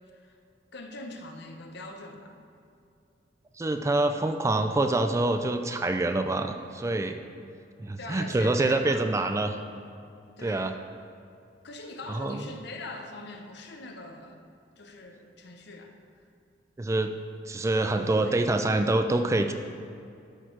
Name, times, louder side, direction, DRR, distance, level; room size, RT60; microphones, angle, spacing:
voice 1, 0.7-2.4 8.0-9.4 10.4-10.7 11.6-14.4 14.8-16.0 17.9-18.5, left 2 dB, 65° left, 4 dB, 0.8 m, -42 dB
voice 2, 3.6-7.2 7.8-9.6 10.4-10.7 12.1-12.4 16.8-17.1 17.5-19.5, right 2 dB, 15° right, 7 dB, 0.3 m, -26 dB
12.5 x 4.5 x 4.5 m, 2.5 s
head